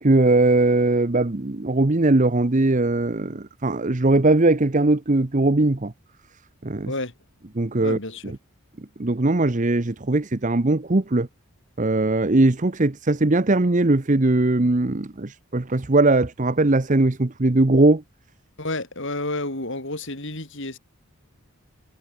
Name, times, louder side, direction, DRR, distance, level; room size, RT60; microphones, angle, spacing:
voice 1, 0.0-5.9 6.6-6.9 7.5-8.4 9.0-11.3 11.8-18.0, right 2 dB, 35° right, 0.9 m, -20 dB
voice 2, 7.8-8.2 18.6-20.8, left 2 dB, 55° left, 6.0 m, -30 dB
head